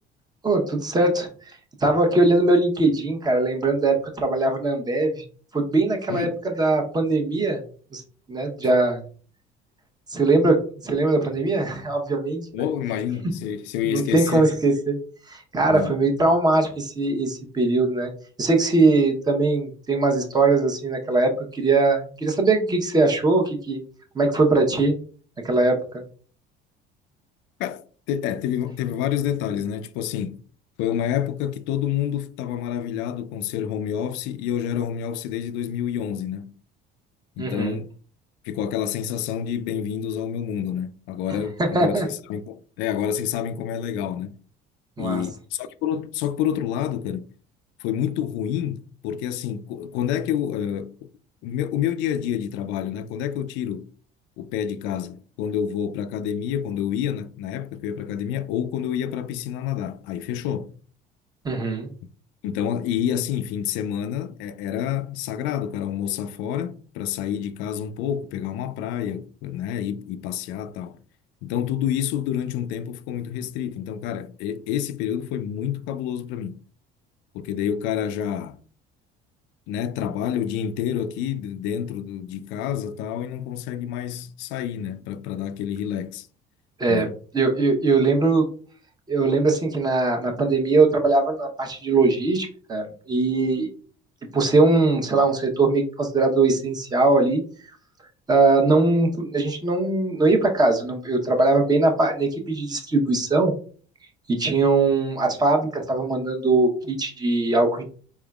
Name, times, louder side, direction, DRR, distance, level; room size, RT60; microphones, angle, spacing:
voice 1, 0.4-1.3 1.8-5.2 5.5-6.3 6.6-7.6 7.9-8.0 8.3-9.0 10.1-12.5 13.9-15.0 15.3-18.1 18.4-23.8 24.1-25.0 25.4-26.0 37.4-37.7 41.7-42.1 45.0-45.2 61.4-61.9 86.8-87.1 87.3-88.5 89.1-93.7 94.3-97.4 98.3-103.5 104.3-107.8, right 3 dB, 20° right, 0.8 m, -21 dB
voice 2, 12.5-14.5 15.7-16.0 27.6-30.4 30.8-36.6 37.4-37.9 38.4-44.4 45.0-47.3 47.8-51.1 51.4-53.9 54.4-60.7 62.4-71.0 71.4-76.6 77.3-78.6 79.7-86.3 86.9-87.1, left 9 dB, 85° left, 0.4 m, -28 dB
4.3 x 3.5 x 2.3 m
cardioid pair, 115°, 19 cm